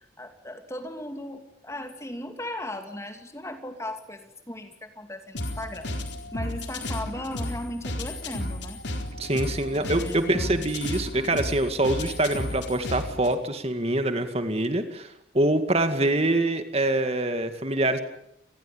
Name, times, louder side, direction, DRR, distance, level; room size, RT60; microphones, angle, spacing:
voice 1, 0.0-5.9 6.3-8.8 9.7-10.7, left 1 dB, 15° left, 7 dB, 2.7 m, -37 dB
sound 1, 5.3-13.3, left 1 dB, 65° left, 4.1 m, -33 dB
voice 2, 9.2-18.0, right 1 dB, 30° right, 8 dB, 2.2 m, -25 dB
29.0 x 20.5 x 8.7 m, 0.74 s
head